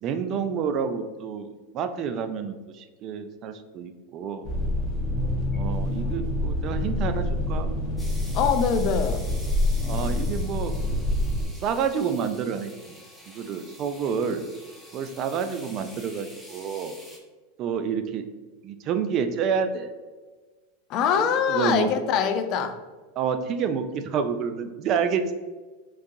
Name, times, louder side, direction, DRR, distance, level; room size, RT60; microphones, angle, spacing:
voice 1, 0.0-1.5 1.7-4.5 5.5-7.7 9.8-10.8 11.6-13.0 13.3-14.4 14.9-17.0 17.6-18.2 18.6-19.9 21.2-21.9 23.2-25.3, right 6 dB, 40° right, 9 dB, 0.3 m, -28 dB
sound 1, 4.4-11.5, left 1 dB, 20° left, 1.1 m, -26 dB
sound 2, 8.0-17.2, equal, ahead, 0.6 m, -47 dB
voice 2, 8.3-9.3 20.9-22.7, left 7 dB, 45° left, 9 dB, 0.3 m, -23 dB
3.8 x 2.7 x 2.6 m, 1.3 s
supercardioid pair, 135°, 0 cm